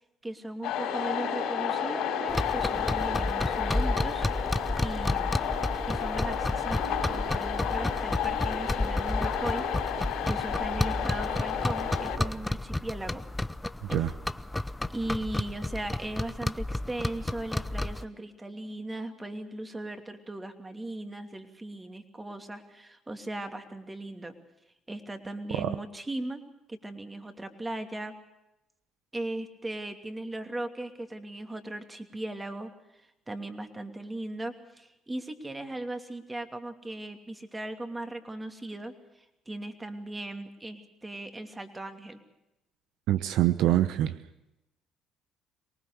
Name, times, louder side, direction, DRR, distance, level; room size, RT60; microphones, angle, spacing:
voice 1, 0.2-4.3 4.8-5.5 5.8-9.6 9.9-13.2 14.9-24.3 24.9-26.4 26.7-28.2 29.1-32.7 33.0-42.2, right 1 dB, 15° right, 6 dB, 2.8 m, -38 dB
sound 1, 0.6-12.2, left 8 dB, 75° left, 5.1 m, -31 dB
sound 2, 2.3-18.0, left 1 dB, 10° left, 0.7 m, -32 dB
voice 2, 43.1-44.2, right 13 dB, 75° right, 12 dB, 0.8 m, -25 dB
24.0 x 19.5 x 6.7 m, 0.90 s
supercardioid pair, 75°, 0 cm